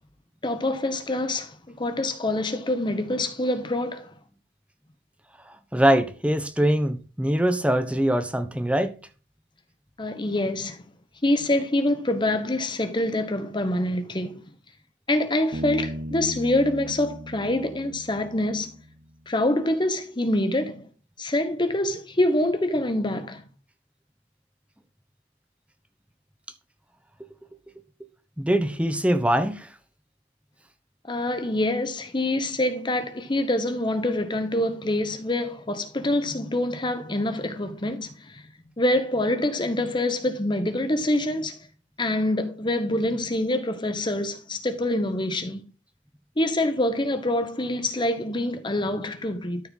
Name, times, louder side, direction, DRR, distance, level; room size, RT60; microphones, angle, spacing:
voice 1, 0.4-4.1 10.0-10.8 11.2-14.4 15.1-18.7 19.3-20.9 21.2-23.4 31.1-38.4 38.8-41.7 42.0-45.6 46.4-49.6, left 1 dB, 25° left, 1.2 m, -25 dB
voice 2, 5.7-8.9 27.2-27.3 28.4-29.7, right 1 dB, 5° right, 0.9 m, -23 dB
Bass guitar, 15.5-19.1, equal, 55° right, 1.1 m, -37 dB
13.0 x 4.5 x 3.7 m
head